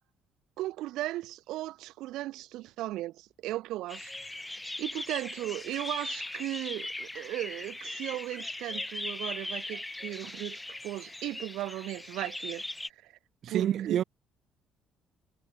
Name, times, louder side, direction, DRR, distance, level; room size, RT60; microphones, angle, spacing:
voice 1, 0.6-4.1 4.4-12.6 13.0-13.1 13.5-14.0, right 16 dB, 80° right, 2.3 m, -37 dB
sound 1, 3.9-12.9, left 2 dB, 10° left, 0.6 m, -39 dB
voice 2, 13.4-14.0, right 10 dB, 55° right, 1.5 m, -28 dB
cardioid pair, 120°, 0 cm